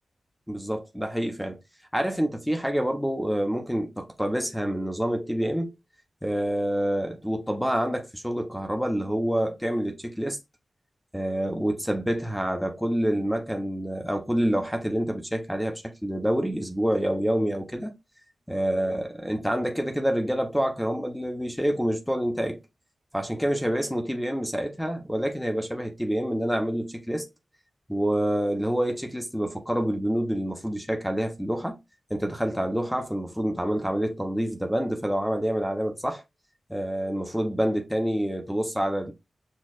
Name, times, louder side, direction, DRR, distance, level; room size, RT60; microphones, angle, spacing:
voice 1, 0.5-1.6 1.9-5.7 6.2-10.4 11.1-17.9 18.5-22.6 23.1-27.2 27.9-31.8 32.1-36.2 36.7-39.1, equal, ahead, 0.8 m, -27 dB
6.3 x 2.4 x 2.4 m
cardioid pair, 70°, 0 cm